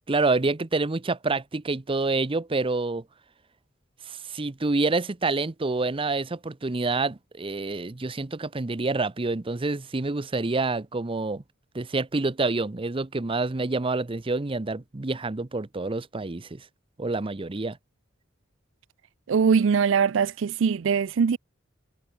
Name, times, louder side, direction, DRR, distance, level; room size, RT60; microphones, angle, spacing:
voice 1, 0.1-3.0 4.1-11.4 11.7-16.6 17.0-17.8, right 3 dB, 30° right, 0.7 m, -27 dB
voice 2, 19.3-21.4, right 6 dB, 75° right, 0.4 m, -22 dB
head